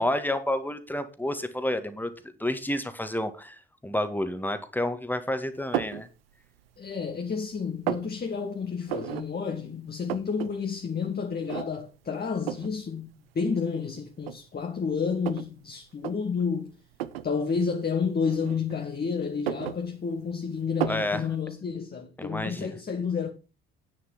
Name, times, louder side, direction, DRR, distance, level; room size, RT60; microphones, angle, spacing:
voice 1, 0.0-2.1 2.4-6.1 20.9-21.2 22.2-22.7, left 1 dB, 5° left, 1.9 m, -30 dB
sound 1, 5.7-6.0 6.6-7.2 7.5-8.1 8.9-9.3 9.6-9.7 9.9-10.5 10.8-10.9 11.5-11.9 12.5-12.7 13.6-13.7 14.2-15.5 15.9-16.1 16.9-17.3 18.3-18.9 19.3-20.3 20.8-21.1, right 11 dB, 80° right, 0.7 m, -32 dB
voice 2, 6.8-16.7 17.2-23.3, left 5 dB, 30° left, 1.7 m, -30 dB
9.5 x 6.6 x 6.0 m
figure-of-eight pair, 50°, 29 cm